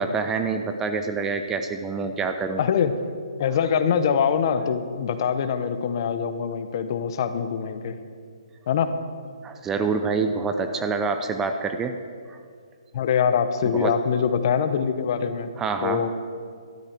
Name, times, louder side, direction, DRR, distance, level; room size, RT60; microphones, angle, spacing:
voice 1, 0.0-2.6 3.5-3.7 9.4-12.0 12.3-12.4 13.7-14.0 15.6-16.1, right 4 dB, 10° right, 7 dB, 0.5 m, -26 dB
voice 2, 2.6-2.9 3.4-8.0 8.7-8.9 12.9-15.5 15.8-16.1, left 7 dB, 40° left, 10 dB, 0.9 m, -23 dB
14.5 x 12.5 x 4.5 m, 2.1 s
hypercardioid pair, 155°, 3 cm